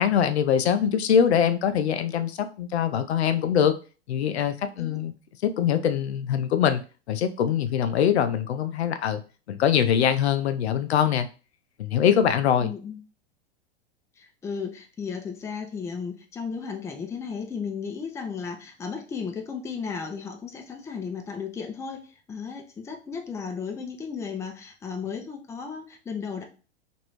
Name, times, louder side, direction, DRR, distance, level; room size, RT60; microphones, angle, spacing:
voice 1, 0.0-3.7 4.1-5.1 5.4-6.8 7.1-9.2 9.5-11.3 11.8-12.7, left 8 dB, 80° left, 0.5 m, -23 dB
voice 2, 12.6-13.0 14.2-26.4, left 6 dB, 10° left, 0.4 m, -34 dB
3.0 x 2.6 x 3.0 m
hypercardioid pair, 110°, 32 cm